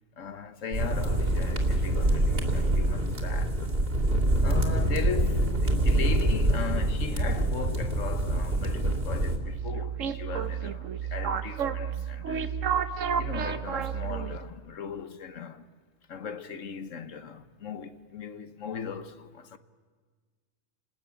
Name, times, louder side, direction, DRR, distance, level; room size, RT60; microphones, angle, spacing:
voice 1, 0.2-3.6 4.4-12.5 13.2-15.7 16.1-19.6, left 6 dB, 85° left, 1.5 m, -38 dB
sound 1, 0.7-9.4, right 1 dB, 50° right, 3.1 m, -25 dB
sound 2, 9.4-14.5, right 7 dB, 90° right, 1.4 m, -31 dB
29.5 x 20.0 x 9.2 m
omnidirectional pair, 1.3 m